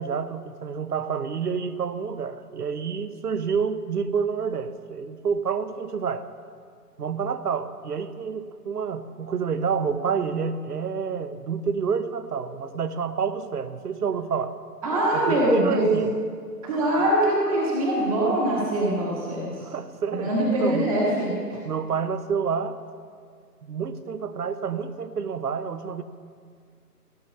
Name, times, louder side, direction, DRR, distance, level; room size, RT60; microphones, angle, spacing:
voice 1, 0.0-6.2 7.0-14.5 15.1-16.1 19.6-20.9 21.6-22.8 23.6-26.0, right 6 dB, 70° right, 12 dB, 0.8 m, -28 dB
voice 2, 14.8-15.9 16.6-19.5 20.2-21.6, right 1 dB, 20° right, -4 dB, 1.4 m, -23 dB
14.5 x 6.2 x 5.4 m, 2.1 s
figure-of-eight pair, 150°, 48 cm